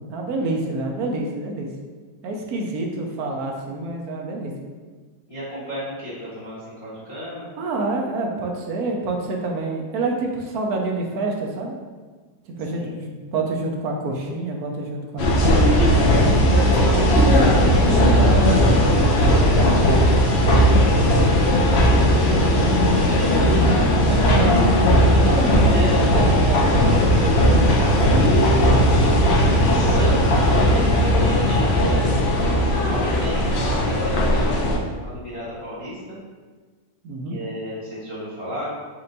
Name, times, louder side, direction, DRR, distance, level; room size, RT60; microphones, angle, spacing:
voice 1, 0.1-1.7 2.2-4.5 7.6-11.7 12.5-15.7 16.5-20.1 23.9-24.6 25.2-29.0 37.0-37.4, right 2 dB, 70° right, 1 dB, 1.0 m, -28 dB
voice 2, 5.3-7.5 12.7-13.0 22.0-22.7 23.0-23.5 25.7-26.0 29.5-32.1 32.6-36.2 37.3-38.7, equal, 20° left, -12 dB, 1.1 m, -33 dB
sound 1, 15.2-34.8, equal, 70° left, 0.6 m, -17 dB
4.4 x 2.6 x 3.9 m, 1.4 s
omnidirectional pair, 1.9 m